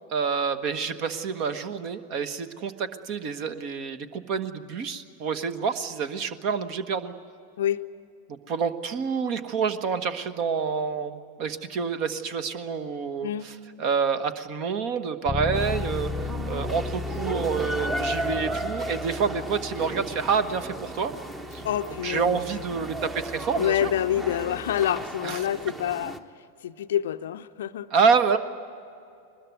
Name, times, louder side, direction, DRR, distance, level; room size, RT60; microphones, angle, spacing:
voice 1, 0.1-7.1 8.3-16.1 16.4-21.1 21.5-21.6 22.0-23.9 25.2-25.4 27.9-28.4, right 6 dB, 40° right, 12 dB, 1.3 m, -28 dB
Bass guitar, 15.3-25.0, left 4 dB, 15° left, 0.7 m, -37 dB
sound 1, 15.5-26.2, right 1 dB, 15° right, 1.3 m, -35 dB
voice 2, 21.6-22.4 23.6-26.2 26.6-27.9, left 11 dB, 60° left, 10 dB, 0.6 m, -27 dB
22.5 x 21.0 x 9.3 m, 2.5 s
figure-of-eight pair, 90°, 0 cm